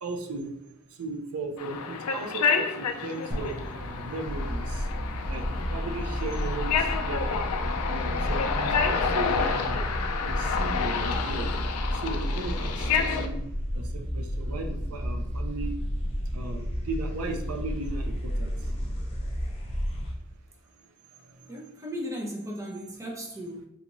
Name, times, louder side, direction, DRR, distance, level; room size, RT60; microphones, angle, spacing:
voice 1, 0.0-0.5 1.0-4.9 5.3-5.4 5.7-7.5 7.9-9.8 10.2-11.5 11.9-13.4 13.7-15.8 16.3-18.5 21.4-21.5, right 2 dB, 85° right, 4 dB, 0.6 m, -36 dB
sound 1, 1.6-13.3, left 5 dB, 85° left, 0.4 m, -29 dB
sound 2, 3.3-7.3, equal, 60° right, 0.9 m, -41 dB
sound 3, 4.2-20.1, equal, 25° left, 0.6 m, -31 dB
voice 2, 21.5-23.7, equal, 15° right, -1 dB, 0.6 m, -36 dB
3.9 x 2.4 x 3.0 m, 0.81 s
head